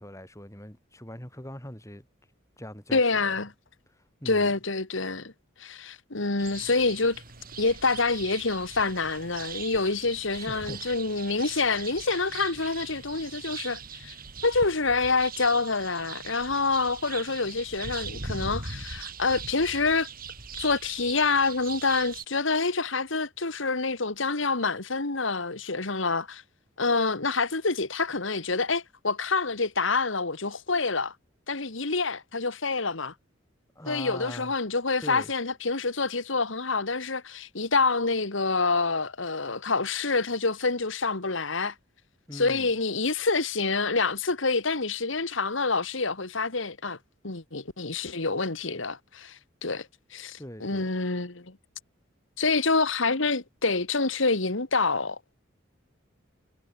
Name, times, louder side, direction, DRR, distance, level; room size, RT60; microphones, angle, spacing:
voice 1, 0.0-2.0 2.6-3.0 4.2-4.5 10.3-10.9 11.3-11.4 33.8-34.5 35.0-35.3 42.3-42.7 50.4-50.9, left 1 dB, 15° left, 5.9 m, -41 dB
voice 2, 2.9-3.5 4.3-5.3 5.6-7.2 7.6-14.2 14.4-20.1 20.6-26.4 26.8-31.1 31.5-33.1 33.9-41.7 42.3-47.0 47.2-51.6 52.4-55.2, left 3 dB, 70° left, 2.0 m, -27 dB
sound 1, 6.4-22.2, right 5 dB, 45° right, 4.7 m, -41 dB
head